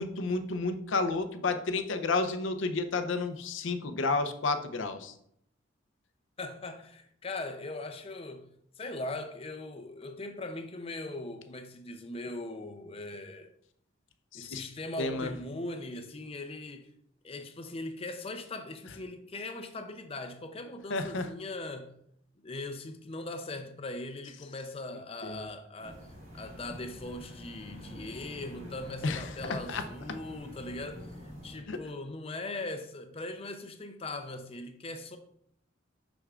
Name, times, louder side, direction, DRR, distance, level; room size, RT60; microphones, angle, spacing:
voice 1, 0.0-5.1 14.3-14.6 15.0-15.3 20.9-21.3 25.2-25.4 29.0-29.8 31.7-31.8, left 3 dB, 70° left, 0.6 m, -31 dB
voice 2, 6.4-8.5 8.8-13.5 14.3-16.9 17.2-22.0 22.4-35.2, left 2 dB, 30° left, 0.5 m, -40 dB
sound 1, 25.8-31.6, equal, 35° right, 1.5 m, -46 dB
6.5 x 6.1 x 2.4 m
head